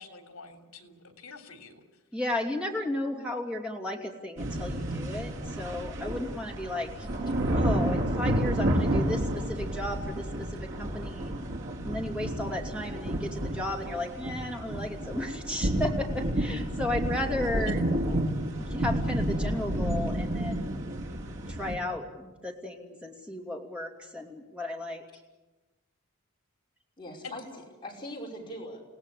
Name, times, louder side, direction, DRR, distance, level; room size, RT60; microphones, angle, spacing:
voice 1, 0.0-1.8 17.7-17.8 27.2-27.3, left 4 dB, 70° left, 5 dB, 3.4 m, -46 dB
voice 2, 2.1-6.9 7.5-11.3 11.8-17.8 18.6-20.7 21.5-25.0, left 1 dB, 5° right, 1 dB, 2.9 m, -34 dB
sound 1, 4.4-21.8, right 1 dB, 60° right, 3.2 m, -30 dB
voice 3, 7.0-7.5 17.3-17.8 27.0-27.4 27.8-28.8, equal, 20° left, -2 dB, 5.6 m, -42 dB
29.0 x 17.0 x 8.5 m, 1.1 s
head